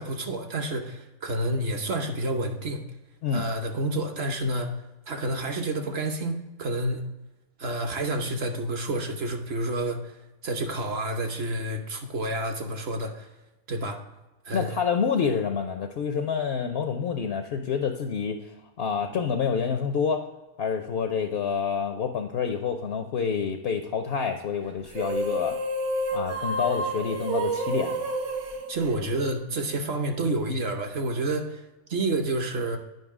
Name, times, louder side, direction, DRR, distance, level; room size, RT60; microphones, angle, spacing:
voice 1, 0.0-2.8 3.3-4.7 5.1-7.0 7.6-10.2 10.4-13.3 13.7-14.0 14.4-14.7 28.7-31.6 31.9-32.8, right 1 dB, 50° right, 4 dB, 1.0 m, -29 dB
voice 2, 14.5-20.2 20.6-25.6 26.1-28.1, left 6 dB, 65° left, 6 dB, 0.6 m, -28 dB
sound 1, 24.9-29.6, right 1 dB, 80° right, 1.4 m, -29 dB
9.3 x 5.3 x 3.6 m, 1.0 s
omnidirectional pair, 1.6 m